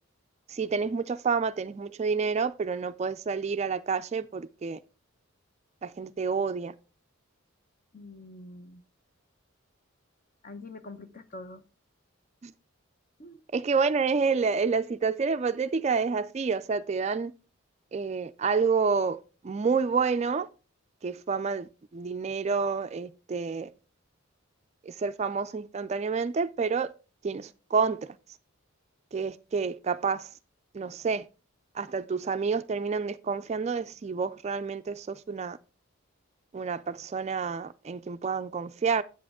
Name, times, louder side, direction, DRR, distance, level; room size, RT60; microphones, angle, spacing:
voice 1, 0.5-4.8 5.8-6.7 12.4-12.5 13.5-17.3 17.9-20.5 21.0-23.7 24.9-26.9 27.2-28.0 29.1-30.3 30.7-31.2 31.8-35.6 36.5-39.0, right 5 dB, 30° right, 0.3 m, -29 dB
voice 2, 7.9-8.8 10.4-11.6 13.2-13.4, left 2 dB, 40° left, 0.8 m, -45 dB
8.6 x 7.5 x 3.6 m
head